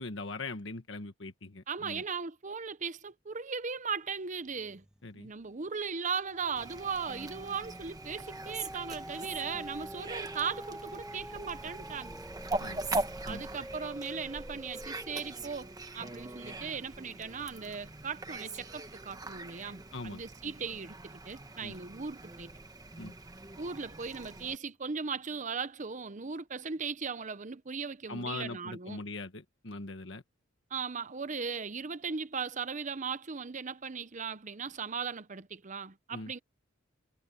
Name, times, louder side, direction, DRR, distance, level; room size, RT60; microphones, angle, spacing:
voice 1, 0.0-2.0 5.0-5.3 12.6-13.0 13.3-13.4 19.9-20.2 21.6-21.7 23.0-23.1 28.1-30.2 36.1-36.3, left 2 dB, 65° left, 1.5 m, -41 dB
voice 2, 1.7-4.8 5.1-12.2 13.3-22.5 23.6-29.0 30.7-36.4, right 5 dB, 40° right, 0.8 m, -38 dB
sound 1, 4.6-5.1 5.5-18.0 18.5-18.6, right 1 dB, 5° right, 0.6 m, -47 dB
Fowl, 6.6-24.6, right 2 dB, 20° right, 1.3 m, -41 dB
head